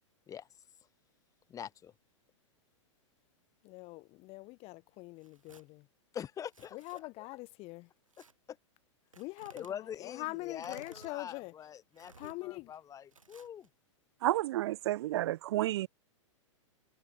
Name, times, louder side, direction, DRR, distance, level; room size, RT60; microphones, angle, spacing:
voice 1, 1.5-1.9 6.1-7.1 8.2-8.6 9.5-13.7, left 9 dB, 20° left, 1.3 m, -44 dB
voice 2, 3.6-5.9 6.7-7.9 9.2-11.5 12.2-12.7, left 22 dB, 40° left, 2.5 m, -43 dB
Tearing, 5.2-5.6 6.4-7.0 8.1-8.3 9.1-9.7 10.5-11.1 11.9-12.4 13.1-13.7, right 4 dB, 90° right, 5.5 m, -57 dB
voice 3, 14.2-15.9, right 15 dB, 55° right, 0.4 m, -31 dB
hypercardioid pair, 110°, 16 cm